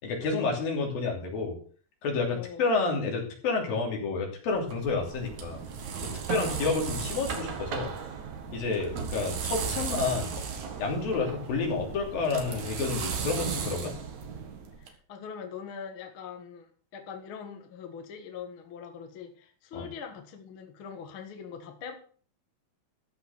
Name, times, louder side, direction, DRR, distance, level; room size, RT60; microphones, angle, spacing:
voice 1, 0.0-1.6 2.0-5.6 6.0-7.9 8.5-10.3 10.8-14.0 19.7-19.9, left 4 dB, 75° left, 1 dB, 4.7 m, -30 dB
voice 2, 2.3-2.7 6.3-6.5 14.8-16.7 16.9-21.9, left 7 dB, 45° left, 5 dB, 1.8 m, -42 dB
sound 1, 4.5-14.9, right 6 dB, 60° right, 2.9 m, -35 dB
14.0 x 5.8 x 6.9 m, 0.43 s
omnidirectional pair, 4.2 m